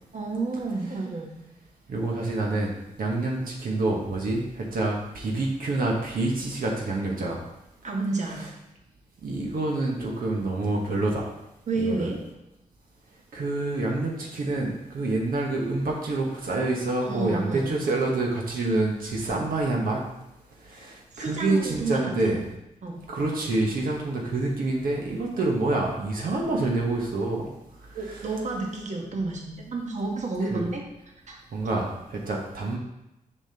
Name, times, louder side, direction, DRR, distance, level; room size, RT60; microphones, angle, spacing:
voice 1, 0.1-1.3 7.8-8.5 11.7-12.2 17.0-17.7 19.2-19.5 21.1-22.4 22.8-23.0 25.3-25.5 27.9-30.8 31.3-31.4, right 3 dB, 55° right, 0 dB, 1.2 m, -30 dB
voice 2, 1.9-2.7 3.0-7.4 9.2-11.3 11.8-12.1 13.3-20.0 20.7-22.4 23.1-27.5 28.1-28.2 30.5-30.6 31.5-32.8, right 2 dB, 80° right, -1 dB, 1.1 m, -27 dB
7.0 x 5.6 x 2.8 m, 0.93 s
cardioid pair, 80°, 15 cm